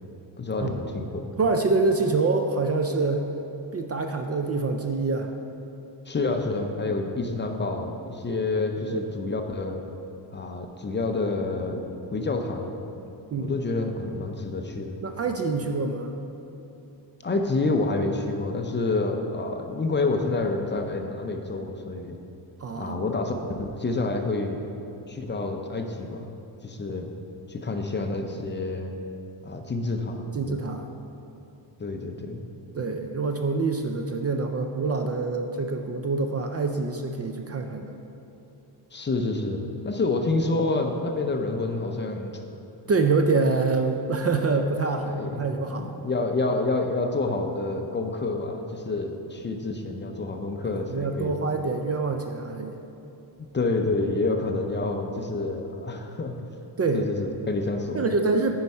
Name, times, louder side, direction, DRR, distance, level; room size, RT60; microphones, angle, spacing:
voice 1, 0.4-1.2 6.1-9.8 10.3-12.7 13.4-15.0 17.2-22.2 22.7-23.3 23.6-24.6 25.1-26.3 26.6-27.1 27.5-28.9 29.4-30.6 31.8-32.4 38.9-42.4 45.0-45.5 45.7-51.3 53.5-56.3 56.9-58.1, left 3 dB, 25° left, 4 dB, 0.6 m, -28 dB
voice 2, 1.4-3.3 3.7-5.3 8.8-9.1 13.3-13.5 15.0-16.1 22.6-23.0 30.3-30.9 32.7-37.9 42.9-45.9 50.9-52.8 56.8-57.1 57.9-58.5, right 3 dB, 35° right, 5 dB, 0.4 m, -26 dB
9.6 x 4.7 x 5.4 m, 2.8 s
cardioid pair, 120°, 45 cm